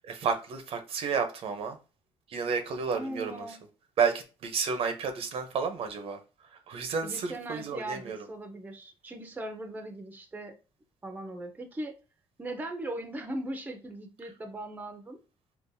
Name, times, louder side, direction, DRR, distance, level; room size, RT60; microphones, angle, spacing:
voice 1, 0.1-1.8 2.3-3.5 4.0-6.2 6.7-8.2, right 5 dB, 60° right, 0.7 m, -31 dB
voice 2, 2.9-3.6 6.7-10.5 11.0-11.9 12.4-15.2, right 1 dB, 15° right, 0.6 m, -39 dB
3.8 x 2.4 x 2.6 m
cardioid pair, 100°, 11 cm